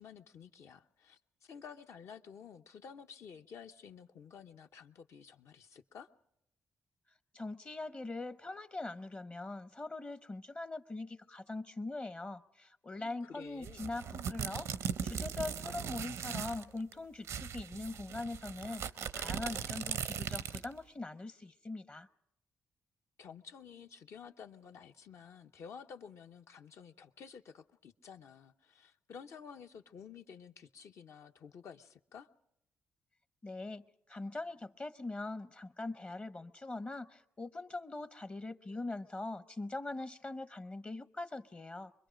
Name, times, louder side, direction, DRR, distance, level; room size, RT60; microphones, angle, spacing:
voice 1, 0.0-6.1 12.9-13.8 23.2-32.3, left 6 dB, 70° left, 0.8 m, -52 dB
voice 2, 7.3-14.7 15.0-18.9 19.1-22.1 33.4-41.9, left 2 dB, 30° left, 0.7 m, -42 dB
sound 1, 13.6-16.6 16.9-17.0 17.2-20.8, right 7 dB, 80° right, 0.7 m, -39 dB
24.0 x 21.5 x 5.1 m
supercardioid pair, 60°, 5 cm